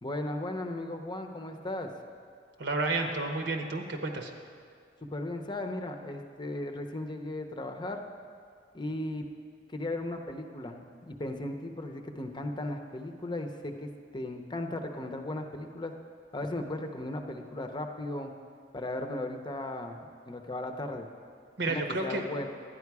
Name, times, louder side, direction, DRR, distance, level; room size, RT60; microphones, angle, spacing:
voice 1, 0.0-1.9 5.0-8.1 8.7-9.3 9.7-15.9 16.3-18.3 18.7-21.1 21.7-22.5, left 1 dB, 25° left, 5 dB, 0.7 m, -36 dB
voice 2, 2.6-4.3 21.6-22.2, right 2 dB, 70° right, 3 dB, 1.0 m, -31 dB
11.5 x 9.4 x 4.7 m, 2.3 s
head